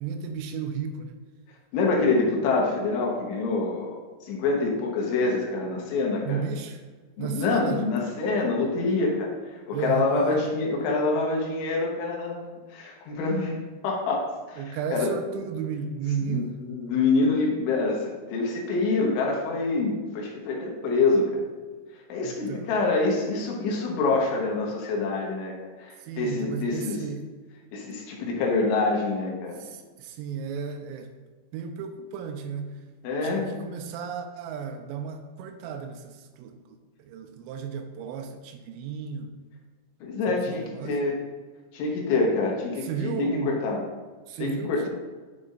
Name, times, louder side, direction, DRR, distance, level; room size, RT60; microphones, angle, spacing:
voice 1, 0.0-1.2 6.2-6.8 7.2-7.9 9.7-10.4 14.6-16.5 22.2-22.7 26.0-27.3 29.6-31.1 31.5-32.8 33.2-39.4 40.3-41.0 42.8-43.7 44.3-44.9, right 6 dB, 85° right, 6 dB, 3.0 m, -34 dB
voice 2, 1.7-4.0 4.3-6.4 7.2-9.3 9.7-13.6 13.8-15.1 16.2-21.4 22.1-25.5 25.8-27.0 27.7-29.6 33.0-33.5 40.0-41.2 41.7-43.8 44.4-44.9, left 3 dB, 80° left, -1 dB, 3.4 m, -26 dB
11.0 x 5.3 x 2.5 m, 1.4 s
omnidirectional pair, 5.7 m